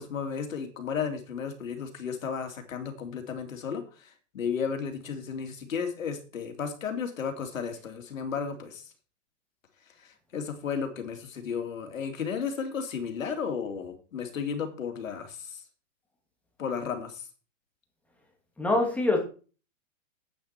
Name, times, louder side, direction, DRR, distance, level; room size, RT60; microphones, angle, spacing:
voice 1, 0.0-8.9 10.0-15.6 16.6-17.2, left 6 dB, 90° left, 6 dB, 2.6 m, -34 dB
voice 2, 18.6-19.2, left 2 dB, 5° left, 1 dB, 2.3 m, -24 dB
9.7 x 8.7 x 4.4 m, 0.36 s
hypercardioid pair, 150°, 38 cm